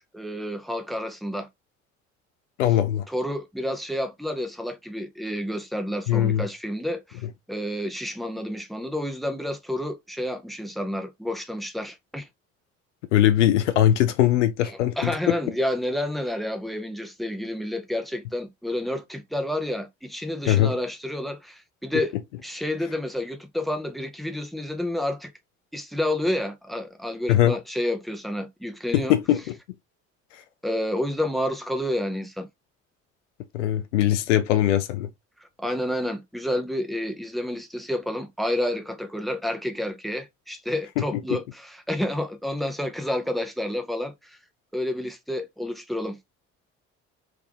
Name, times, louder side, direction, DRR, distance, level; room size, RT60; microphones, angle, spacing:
voice 1, 0.0-1.5 3.1-7.2 7.5-12.3 14.6-22.1 22.4-25.3 25.7-29.1 30.6-32.5 35.6-44.4 44.7-46.2, left 1 dB, ahead, 0.8 m, -29 dB
voice 2, 2.6-3.0 6.1-6.5 13.1-15.1 20.5-20.8 27.3-27.6 28.9-29.4 33.5-35.1, left 12 dB, 70° left, 0.6 m, -20 dB
3.6 x 3.4 x 3.4 m
figure-of-eight pair, 45°, 38 cm